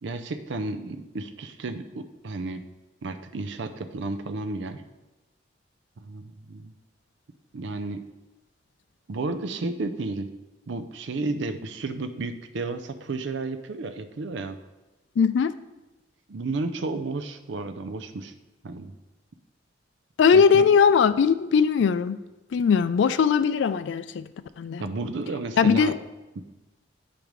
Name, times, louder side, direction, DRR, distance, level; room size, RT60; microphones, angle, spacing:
voice 1, 0.0-2.6 3.0-4.8 6.0-6.7 7.5-8.0 9.1-10.3 10.7-14.6 16.3-18.3 18.6-18.9 20.3-20.6 24.8-25.9, right 3 dB, 70° right, 0.5 m, -32 dB
voice 2, 15.2-15.5 20.2-22.2 22.5-24.3 24.6-24.8 25.6-25.9, left 6 dB, 65° left, 0.3 m, -20 dB
8.5 x 5.2 x 3.1 m
head